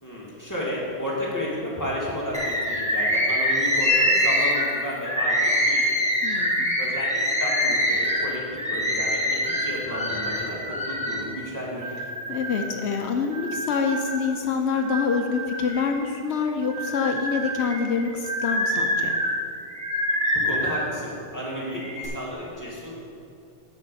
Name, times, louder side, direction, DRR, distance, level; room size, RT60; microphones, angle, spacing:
voice 1, 0.0-6.0 6.8-12.0 20.3-23.0, equal, 15° left, -6 dB, 2.2 m, -32 dB
Bird, 2.3-11.3 11.8-12.8 13.3-14.3 14.8-16.1 16.6-20.9 21.6-22.1, equal, 5° right, 1.4 m, -25 dB
voice 2, 6.2-6.8 12.3-19.1, left 5 dB, 75° left, 4 dB, 1.0 m, -26 dB
9.4 x 5.6 x 6.9 m, 2.6 s
omnidirectional pair, 1.2 m